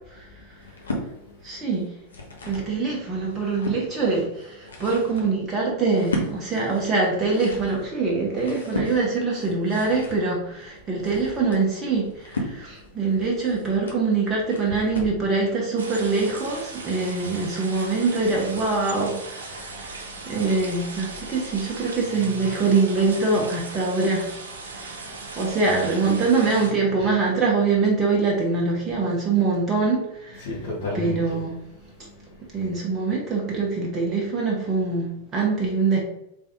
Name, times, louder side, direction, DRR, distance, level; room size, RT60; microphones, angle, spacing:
voice 1, 0.4-1.6 2.3-2.7 19.6-20.3 24.7-25.3 30.4-31.3 31.7-32.7, left 2 dB, 55° left, 1.5 m, -37 dB
sound 1, 0.6-1.1 1.8-2.7 3.2-3.8 4.4-15.2, left 1 dB, 70° left, 1.0 m, -35 dB
voice 2, 1.4-1.9 2.4-24.3 24.7-30.5 30.9-31.6 32.5-36.0, right 4 dB, 25° right, 1.1 m, -24 dB
sound 2, 15.8-26.7, right 3 dB, 65° right, 0.8 m, -38 dB
4.0 x 3.5 x 3.6 m
figure-of-eight pair, 90°, 0 cm